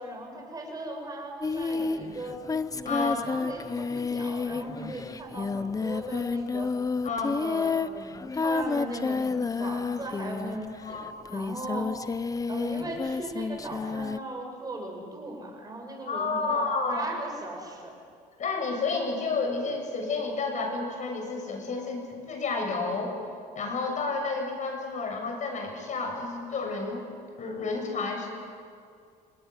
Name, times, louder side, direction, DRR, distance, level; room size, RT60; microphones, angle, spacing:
voice 1, 0.0-2.4 2.8-6.8 7.4-11.9 12.5-17.9, right 1 dB, 20° right, 1 dB, 7.6 m, -38 dB
Singing, 1.4-10.8 11.3-14.2, left 4 dB, 20° left, 0.8 m, -30 dB
voice 2, 2.8-3.3 7.0-7.4 10.8-11.1 16.1-17.0 18.4-23.2 23.5-27.1 27.4-28.3, left 4 dB, 45° left, 3 dB, 7.7 m, -30 dB
28.0 x 19.5 x 9.6 m, 2.3 s
cardioid pair, 110°, 17 cm